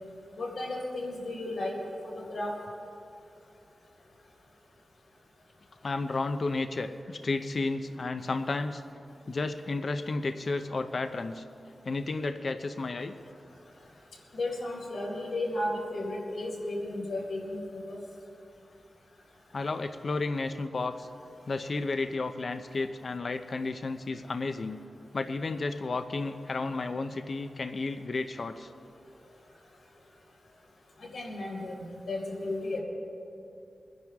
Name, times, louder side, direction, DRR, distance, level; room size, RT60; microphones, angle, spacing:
voice 1, 0.4-1.7 2.0-2.6 14.3-18.0 31.0-32.8, left 1 dB, 85° left, -3 dB, 3.8 m, -34 dB
voice 2, 5.8-8.8 9.3-11.4 11.8-13.1 19.5-21.1 21.5-24.8 25.1-28.7, left 3 dB, 50° left, 8 dB, 0.6 m, -32 dB
25.5 x 10.5 x 3.6 m, 2.7 s
wide cardioid pair, 125°, 0 cm